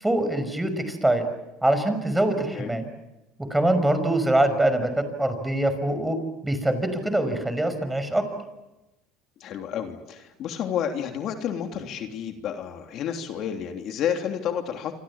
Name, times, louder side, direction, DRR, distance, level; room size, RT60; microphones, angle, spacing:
voice 1, 0.0-1.2 1.6-2.8 3.5-6.2 6.4-8.2, right 1 dB, 5° right, 10 dB, 5.5 m, -23 dB
voice 2, 9.4-14.9, left 8 dB, 55° left, 4 dB, 3.2 m, -30 dB
27.5 x 25.5 x 7.4 m, 0.99 s
supercardioid pair, 100°, 0 cm